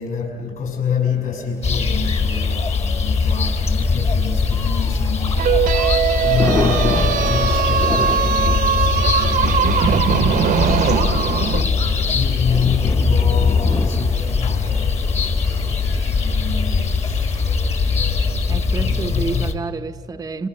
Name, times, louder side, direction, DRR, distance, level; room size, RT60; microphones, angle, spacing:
voice 1, 0.0-17.6 17.8-19.6, left 6 dB, 55° left, 7.1 m, -28 dB
sound 1, 1.6-19.5, left 4 dB, 40° left, 1.8 m, -20 dB
Thunder / Rain, 2.1-18.6, left 3 dB, 20° left, 0.9 m, -31 dB
sound 2, 5.4-11.6, right 9 dB, 55° right, 0.9 m, -20 dB
voice 2, 18.5-20.5, right 4 dB, 20° right, 0.7 m, -29 dB
29.5 x 25.5 x 6.5 m
cardioid pair, 110°, 17 cm